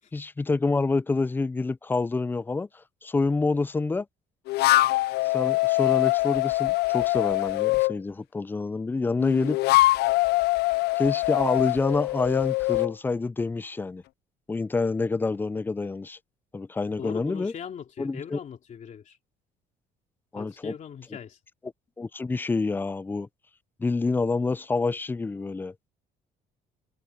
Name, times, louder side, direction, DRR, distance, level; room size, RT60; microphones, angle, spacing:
voice 1, 0.1-4.1 5.2-9.6 11.0-14.0 14.5-16.2 16.5-17.5 18.0-18.4 20.3-20.7 22.0-23.3 23.8-25.7, left 3 dB, 10° left, 0.3 m, -27 dB
sound 1, 4.5-8.0 9.2-12.9, left 19 dB, 75° left, 0.4 m, -23 dB
voice 2, 17.0-19.2 20.3-21.4, left 8 dB, 45° left, 3.0 m, -39 dB
cardioid pair, 110°, 17 cm